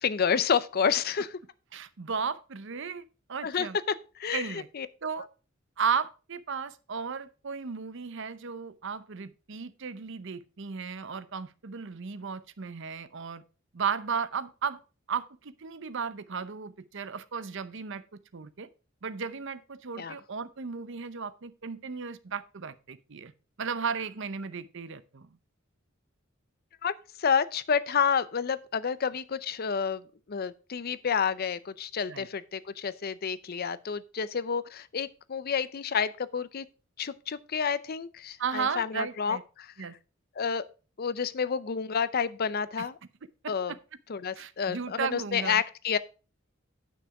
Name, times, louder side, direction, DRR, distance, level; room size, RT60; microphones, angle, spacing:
voice 1, 0.0-1.4 3.4-4.9 5.1-5.3 20.0-20.1 26.8-26.9 27.2-36.7 37.0-39.7 40.4-40.6 41.0-42.9 43.5-43.7 44.1-46.0, left 6 dB, 50° left, 0.5 m, -29 dB
voice 2, 1.7-3.8 4.3-4.7 5.0-5.3 5.8-13.4 13.7-14.8 15.1-18.7 19.0-23.3 23.6-25.4 32.1-32.3 38.4-39.4 39.8-39.9 42.8-42.9 43.4-43.8 44.4-45.6, right 6 dB, 65° right, 0.7 m, -35 dB
9.4 x 6.1 x 4.7 m
head